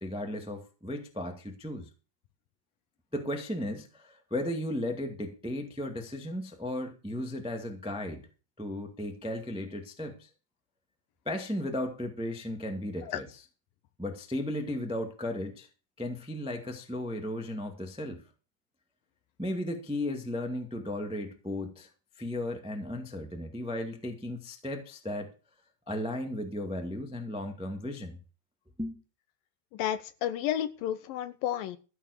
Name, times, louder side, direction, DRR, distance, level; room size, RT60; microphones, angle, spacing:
voice 1, 0.0-1.9 3.1-8.2 8.6-10.3 11.2-13.4 14.0-15.7 16.0-18.2 19.4-21.9 22.2-25.3 25.9-28.2 28.8-29.0, left 1 dB, 5° right, 0.4 m, -35 dB
voice 2, 29.7-31.8, left 11 dB, 75° left, 2.3 m, -32 dB
15.0 x 7.2 x 6.6 m
omnidirectional pair, 4.5 m